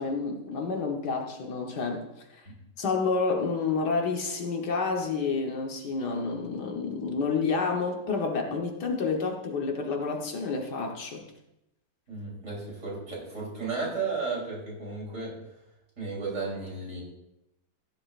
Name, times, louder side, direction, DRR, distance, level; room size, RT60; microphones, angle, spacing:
voice 1, 0.0-2.1 2.3-2.4 2.8-11.2, left 4 dB, 70° left, 2 dB, 1.8 m, -29 dB
voice 2, 12.1-15.3 16.0-17.0, right 4 dB, 45° right, -4 dB, 3.9 m, -34 dB
15.5 x 11.0 x 2.5 m, 0.86 s
omnidirectional pair, 1.9 m